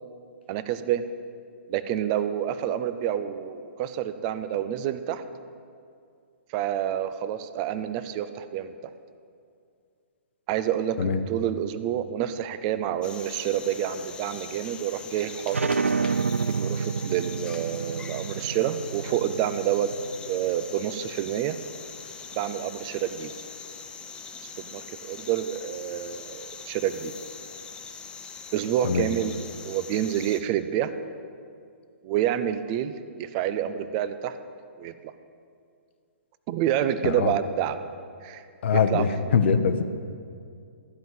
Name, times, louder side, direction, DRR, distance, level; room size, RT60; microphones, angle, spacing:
voice 1, 0.5-1.0 1.7-5.2 6.5-8.7 10.5-15.6 16.6-21.6 22.3-23.3 24.6-27.1 28.5-29.4 29.6-30.9 32.0-34.4 34.8-35.1 36.5-37.8 38.2-38.4 38.9-39.0, right 10 dB, 35° right, 12 dB, 0.6 m, -28 dB
sound 1, 13.0-30.4, left 5 dB, 15° left, 0.6 m, -42 dB
sound 2, 15.5-20.8, right 5 dB, 90° right, 0.4 m, -29 dB
voice 2, 38.6-39.8, left 6 dB, 60° left, 9 dB, 0.8 m, -23 dB
13.5 x 5.4 x 7.8 m, 2.3 s
hypercardioid pair, 130°, 7 cm